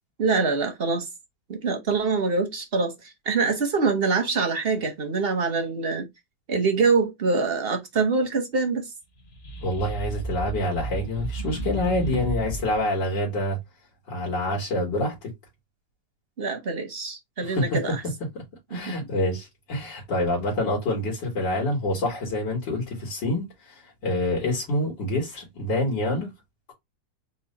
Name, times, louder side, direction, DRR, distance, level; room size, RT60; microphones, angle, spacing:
voice 1, 0.2-1.1 1.5-6.1 6.5-8.8 16.4-18.0 18.7-18.9, right 4 dB, 55° right, 0.7 m, -25 dB
sound 1, 9.2-12.8, right 1 dB, 40° left, 1.1 m, -33 dB
voice 2, 9.6-13.6 14.1-15.3 17.4-17.8 18.7-26.3, left 1 dB, 90° left, 2.4 m, -27 dB
4.4 x 2.2 x 3.8 m
omnidirectional pair, 1.9 m